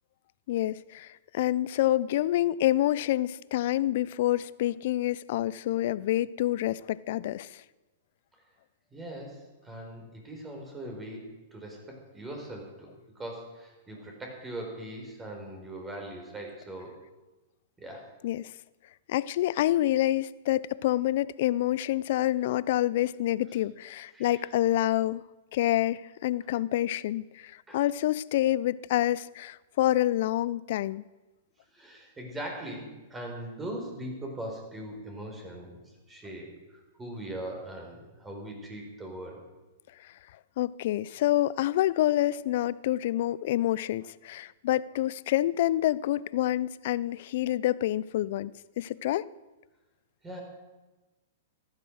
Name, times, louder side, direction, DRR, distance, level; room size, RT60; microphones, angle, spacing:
voice 1, 0.5-1.1 1.3-7.5 18.2-18.5 19.1-25.2 25.5-31.0 40.6-48.5 48.8-49.2, left 14 dB, 60° left, 0.5 m, -27 dB
voice 2, 8.9-17.0 17.8-18.1 24.1-24.4 27.7-27.8 31.7-35.8 36.1-36.5 37.0-39.4 50.2-50.4, right 1 dB, 15° right, 4.4 m, -40 dB
15.0 x 11.5 x 6.4 m
hypercardioid pair, 120°, 0 cm